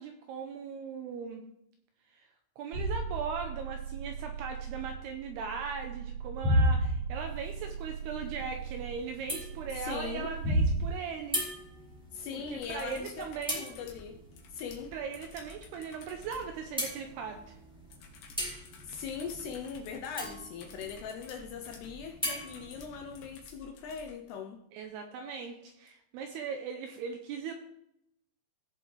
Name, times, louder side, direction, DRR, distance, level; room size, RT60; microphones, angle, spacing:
voice 1, 0.0-1.4 2.1-2.3 2.6-11.4 12.3-13.7 14.9-17.6 24.7-27.5, right 6 dB, 80° right, 4 dB, 2.4 m, -39 dB
sound 1, 2.7-10.9, right 1 dB, 50° right, 5.3 m, -32 dB
sound 2, 7.2-23.4, equal, ahead, 2.6 m, -42 dB
voice 2, 9.7-10.3 12.1-13.3 13.6-14.2 14.5-14.9 18.8-24.6, left 6 dB, 80° left, 5 dB, 2.5 m, -40 dB
sound 3, 12.6-16.5 17.9-24.1 25.9-26.0, left 5 dB, 65° left, 2.6 m, -53 dB
16.5 x 6.9 x 3.3 m, 0.78 s
omnidirectional pair, 5.4 m